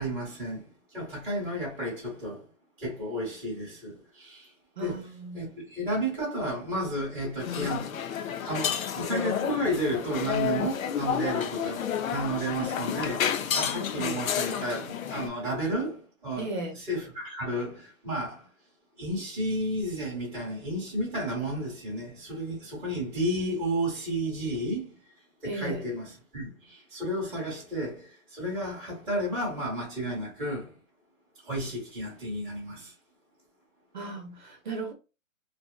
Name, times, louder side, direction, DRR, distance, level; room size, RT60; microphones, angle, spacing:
voice 1, 0.0-2.4 2.8-4.5 4.8-5.1 5.3-18.5 19.0-24.9 25.4-30.7 31.4-32.9, right 1 dB, 5° right, 0.5 m, -32 dB
voice 2, 4.8-5.5 16.4-16.8 25.4-25.8 33.9-34.9, right 3 dB, 35° right, 0.7 m, -36 dB
sound 1, 7.4-15.3, left 8 dB, 75° left, 0.6 m, -30 dB
2.6 x 2.5 x 2.3 m
hypercardioid pair, 165°, 41 cm